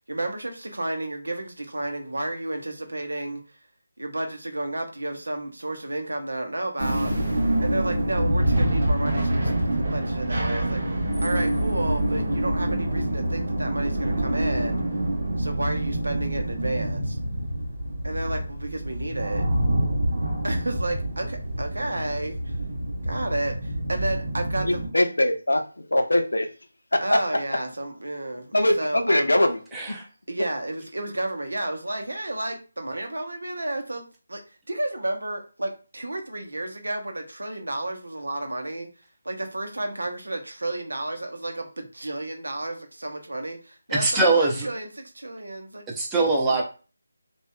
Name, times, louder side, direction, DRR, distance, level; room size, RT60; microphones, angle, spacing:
voice 1, 0.1-3.4 4.0-7.1 7.6-10.8 11.2-14.8 15.4-17.2 18.0-19.5 20.4-22.6 23.0-24.8 27.0-29.3 30.3-34.4 34.7-38.9 39.2-45.8 46.5-46.6, right 1 dB, 75° right, 5 dB, 0.8 m, -31 dB
sound 1, 6.8-24.9, right 1 dB, 55° right, 1.1 m, -26 dB
voice 2, 24.6-25.6 25.9-26.5 26.9-27.2 28.5-29.6, left 1 dB, 80° left, 6 dB, 0.6 m, -21 dB
voice 3, 29.7-30.0 43.9-44.7 46.0-46.6, right 3 dB, 10° right, -4 dB, 0.6 m, -22 dB
2.7 x 2.3 x 2.2 m, 0.35 s
figure-of-eight pair, 160°, 0 cm